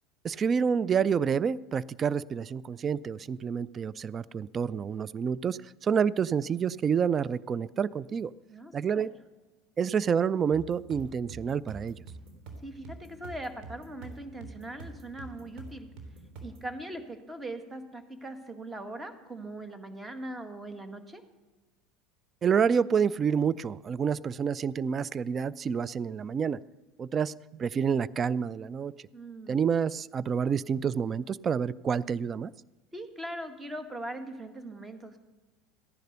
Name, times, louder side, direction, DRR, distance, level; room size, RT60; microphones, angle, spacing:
voice 1, 0.2-8.3 8.7-9.1 9.8-12.0 22.4-26.6 27.0-28.9 29.5-32.5, right 7 dB, 35° right, 21 dB, 0.3 m, -28 dB
voice 2, 8.5-9.1 12.6-15.9 16.4-21.2 29.1-29.7 32.9-35.2, right 1 dB, 15° right, 8 dB, 1.9 m, -40 dB
sound 1, 10.5-16.7, right 3 dB, 55° right, 3.6 m, -46 dB
15.0 x 10.5 x 6.7 m, 1.2 s
hypercardioid pair, 80°, 0 cm